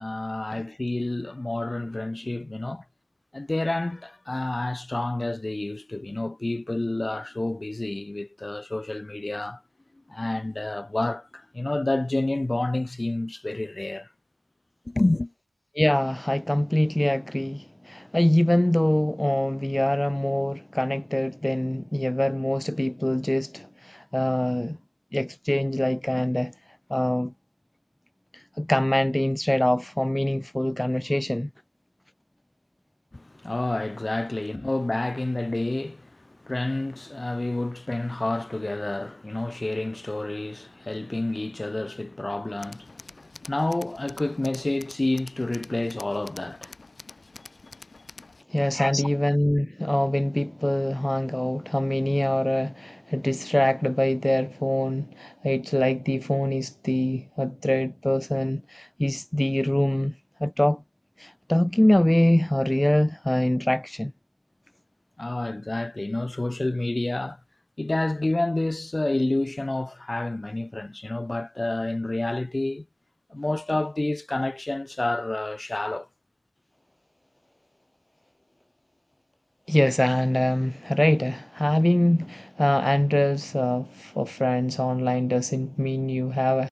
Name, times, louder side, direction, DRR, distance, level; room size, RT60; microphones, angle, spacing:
voice 1, 0.0-2.8 3.3-9.6 10.1-14.1 14.9-15.3 33.1-46.8 48.7-49.1 65.2-67.4 67.8-72.9 73.3-76.1, left 2 dB, 35° left, 1.9 m, -29 dB
voice 2, 15.8-24.8 25.1-26.5 26.9-27.3 28.3-31.5 48.5-60.1 60.4-60.8 61.2-64.1 79.7-86.7, left 1 dB, 15° left, 0.4 m, -24 dB
Tools, 42.6-48.4, left 3 dB, 60° left, 4.2 m, -47 dB
wide cardioid pair, 50°, 0 cm